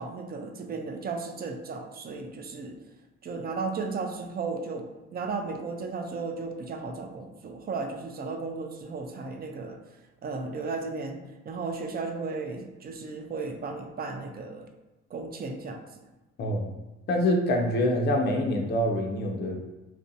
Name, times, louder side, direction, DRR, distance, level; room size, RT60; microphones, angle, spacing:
voice 1, 0.0-2.8 3.2-9.8 10.2-14.7 15.1-15.8, right 4 dB, 30° right, 4 dB, 0.4 m, -35 dB
voice 2, 16.4-16.7 17.1-19.5, left 1 dB, 35° left, 2 dB, 0.4 m, -25 dB
2.5 x 2.1 x 2.6 m, 1.1 s
cardioid pair, 90°, 30 cm